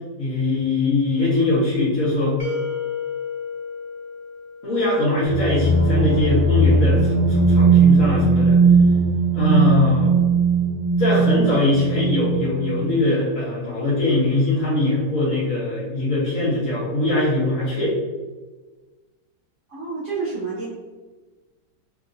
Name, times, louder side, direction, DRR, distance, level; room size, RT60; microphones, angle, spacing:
voice 1, 0.2-2.4 4.6-8.6 9.3-10.2 11.0-17.9, left 2 dB, 50° left, -10 dB, 1.9 m, -21 dB
sound 1, 2.4-5.3, left 6 dB, 90° right, 0.4 m, -31 dB
sound 2, 5.2-12.9, right 4 dB, 5° right, 0.9 m, -18 dB
voice 2, 19.7-20.7, right 4 dB, 50° right, -8 dB, 1.0 m, -28 dB
4.1 x 3.1 x 2.6 m, 1.3 s
omnidirectional pair, 1.9 m